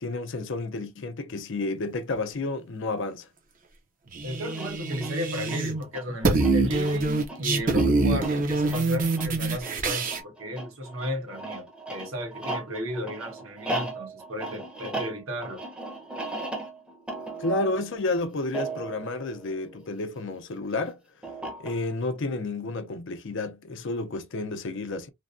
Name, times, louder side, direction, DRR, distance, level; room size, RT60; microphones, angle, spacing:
voice 1, 0.0-3.3 17.4-21.0 21.6-25.1, left 2 dB, 65° left, 0.6 m, -31 dB
sound 1, 4.1-5.8 6.1-10.2, right 3 dB, 45° right, 0.7 m, -25 dB
voice 2, 4.2-15.6, left 1 dB, 80° right, 1.2 m, -34 dB
sound 2, 4.4-20.2 21.2-22.1, right 2 dB, 5° right, 0.7 m, -37 dB
3.3 x 2.1 x 2.5 m
head